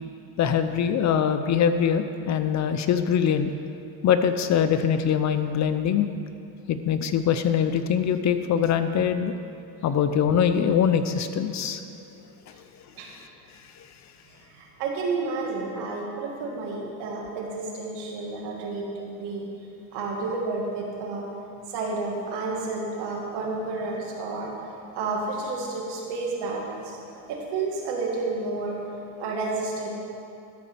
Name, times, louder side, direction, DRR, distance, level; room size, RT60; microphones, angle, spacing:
voice 1, 0.4-3.5 4.0-6.1 6.7-9.3 9.8-11.8, left 8 dB, 40° left, 9 dB, 0.6 m, -23 dB
voice 2, 14.5-19.5 19.9-21.3 21.7-24.5 24.9-28.8 29.2-29.9, right 3 dB, 75° right, -2 dB, 2.2 m, -31 dB
13.0 x 5.0 x 6.9 m, 2.5 s
cardioid pair, 115°, 42 cm